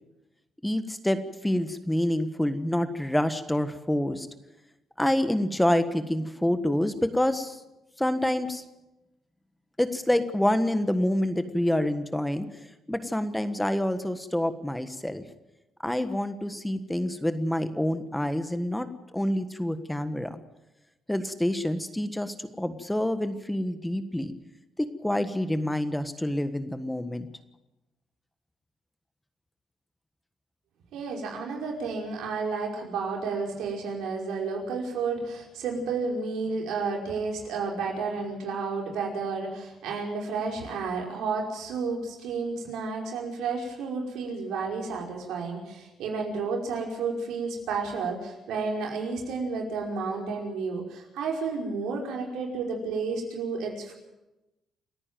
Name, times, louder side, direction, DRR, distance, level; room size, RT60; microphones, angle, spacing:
voice 1, 0.6-4.3 5.0-7.6 8.0-8.6 9.8-12.5 12.9-15.2 15.8-18.9 19.1-20.4 21.1-24.3 24.8-27.3, left 1 dB, 5° left, 10 dB, 1.4 m, -27 dB
voice 2, 30.9-53.9, right 4 dB, 85° right, 0 dB, 5.3 m, -31 dB
28.5 x 9.9 x 9.2 m, 0.99 s
cardioid pair, 90°, 0 cm